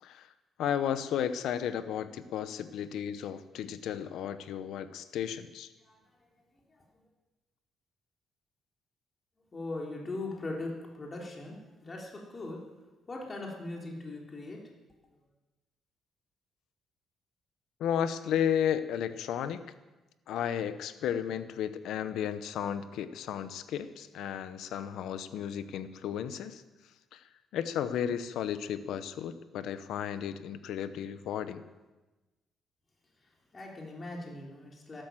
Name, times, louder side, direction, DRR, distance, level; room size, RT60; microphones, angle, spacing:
voice 1, 0.6-5.7 17.8-19.6 20.3-26.6 27.1-27.2 27.5-31.6, left 9 dB, 80° left, 12 dB, 0.8 m, -33 dB
voice 2, 5.8-6.8 9.5-12.7 13.1-14.6 33.2-35.0, left 2 dB, 30° left, -1 dB, 3.8 m, -40 dB
13.0 x 12.5 x 7.6 m, 1.1 s
cardioid pair, 90°, 0 cm